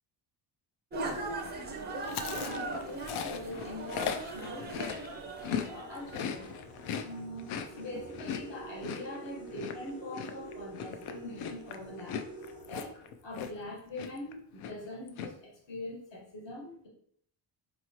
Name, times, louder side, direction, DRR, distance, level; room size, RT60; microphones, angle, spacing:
sound 1, 0.9-6.5, right 2 dB, 25° right, 0.4 m, -39 dB
Chewing mastication, 2.0-5.7 6.0-13.7 14.0-14.3 14.6-15.3, left 7 dB, 85° left, 0.6 m, -38 dB
voice 1, 2.1-4.9 5.6-12.2 12.7-16.9, left 1 dB, 65° left, -2 dB, 1.5 m, -43 dB
sound 2, 4.1-13.7, right 2 dB, 45° left, 1.2 m, -49 dB
4.6 x 3.1 x 2.8 m, 0.63 s
cardioid pair, 175°, 48 cm